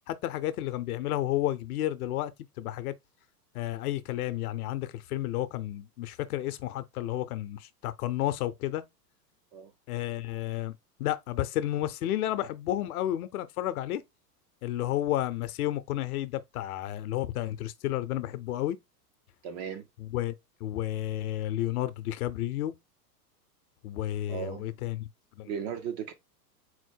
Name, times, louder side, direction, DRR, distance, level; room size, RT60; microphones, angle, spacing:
voice 1, 0.1-2.3 2.6-2.9 3.5-8.8 9.9-14.0 14.6-18.8 20.0-20.3 20.6-22.7 23.8-25.1 25.4-25.5, left 13 dB, 65° left, 0.7 m, -31 dB
voice 2, 19.4-19.9 24.3-24.7 25.5-26.1, right 7 dB, 30° right, 0.4 m, -36 dB
4.3 x 2.1 x 4.5 m
hypercardioid pair, 110°, 49 cm